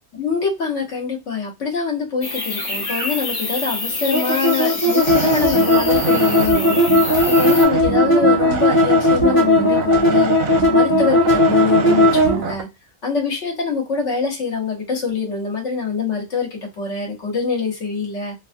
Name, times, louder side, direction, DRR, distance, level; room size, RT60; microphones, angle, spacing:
voice 1, 0.1-10.4 10.7-12.7 13.0-18.3, left 4 dB, 80° left, 1.4 m, -24 dB
sound 1, 2.2-7.7, left 3 dB, 55° left, 1.0 m, -27 dB
sound 2, 4.1-12.4, left 1 dB, 20° left, 0.9 m, -16 dB
sound 3, 5.0-12.6, right 6 dB, 65° right, 0.7 m, -26 dB
3.1 x 2.2 x 2.5 m
omnidirectional pair, 1.2 m